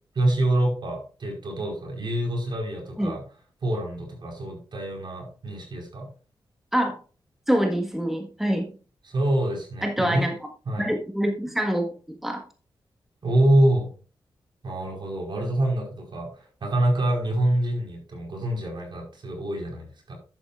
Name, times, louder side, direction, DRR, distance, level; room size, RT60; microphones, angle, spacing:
voice 1, 0.1-3.2 3.6-6.1 9.0-10.3 10.7-10.9 13.2-13.9 14.6-16.3 16.6-20.1, right 1 dB, 60° right, 0 dB, 4.8 m, -25 dB
voice 2, 7.5-8.7 9.8-10.3 10.8-12.4, equal, 5° right, 3 dB, 1.5 m, -25 dB
11.0 x 8.8 x 2.5 m, 0.36 s
cardioid pair, 65°, 9 cm